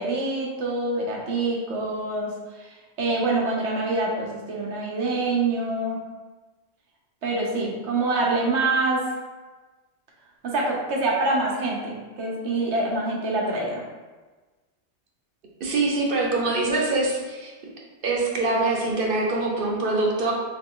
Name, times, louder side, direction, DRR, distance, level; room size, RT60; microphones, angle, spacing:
voice 1, 0.0-2.7 3.0-6.0 7.2-9.1 10.4-13.8, right 2 dB, 85° right, -2 dB, 1.1 m, -25 dB
voice 2, 15.6-17.5 18.0-20.3, right 2 dB, 55° right, -1 dB, 0.9 m, -24 dB
3.2 x 3.0 x 3.7 m, 1.3 s
omnidirectional pair, 1.1 m